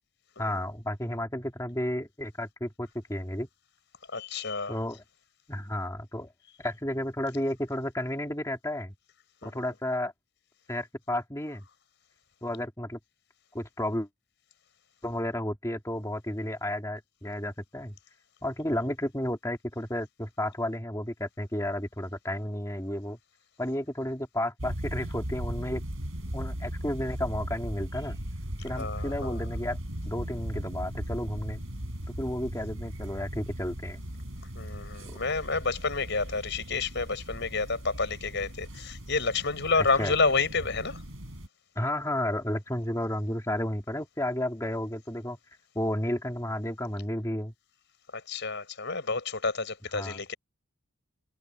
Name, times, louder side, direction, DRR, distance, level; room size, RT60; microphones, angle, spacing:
voice 1, 0.4-3.5 4.7-5.0 5.5-6.3 6.6-8.9 9.4-10.1 10.7-11.6 12.4-13.0 13.5-14.1 15.0-17.9 18.4-23.2 23.6-25.8 26.3-28.2 28.6-29.8 30.1-31.6 32.2-34.0 39.7-40.1 41.8-45.4 45.7-47.5 49.9-50.2, left 1 dB, 15° left, 2.6 m, -32 dB
voice 2, 4.1-4.8 9.4-9.6 28.8-29.4 34.5-41.0 48.3-50.3, left 4 dB, 50° left, 6.1 m, -29 dB
sound 1, 24.6-41.5, equal, 65° right, 5.3 m, -38 dB
head